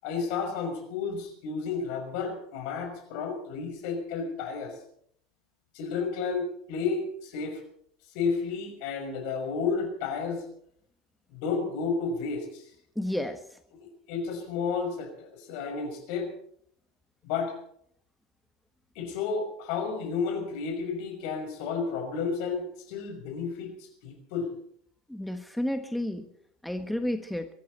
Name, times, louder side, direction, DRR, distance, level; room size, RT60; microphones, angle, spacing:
voice 1, 0.0-4.8 5.7-7.6 8.1-10.4 11.3-12.6 13.8-16.3 17.2-17.5 19.0-23.7 24.0-24.5, left 5 dB, 60° left, 6 dB, 5.8 m, -32 dB
voice 2, 12.9-13.6 25.1-26.3 26.6-27.5, left 1 dB, 5° left, 7 dB, 1.5 m, -31 dB
23.5 x 14.0 x 4.3 m, 0.65 s
hypercardioid pair, 75°, 0 cm